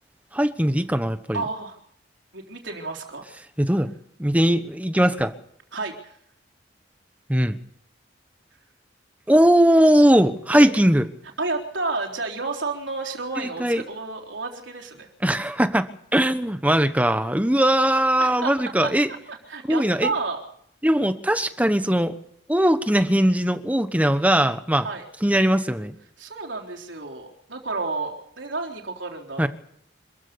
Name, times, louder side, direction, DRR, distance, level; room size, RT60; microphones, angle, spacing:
voice 1, 0.3-1.4 3.6-3.9 4.2-5.3 7.3-7.6 9.3-11.1 13.6-13.8 15.2-19.1 19.7-20.1 20.8-22.2 22.5-24.9 25.2-26.0 29.4-29.5, right 1 dB, 10° right, 10 dB, 1.2 m, -20 dB
voice 2, 1.3-1.8 2.3-3.2 5.7-6.2 10.5-10.7 11.4-15.1 18.2-18.5 18.8-20.4 24.8-25.0 26.2-29.5, right 3 dB, 75° right, 2 dB, 3.9 m, -31 dB
26.0 x 15.0 x 7.0 m, 0.69 s
head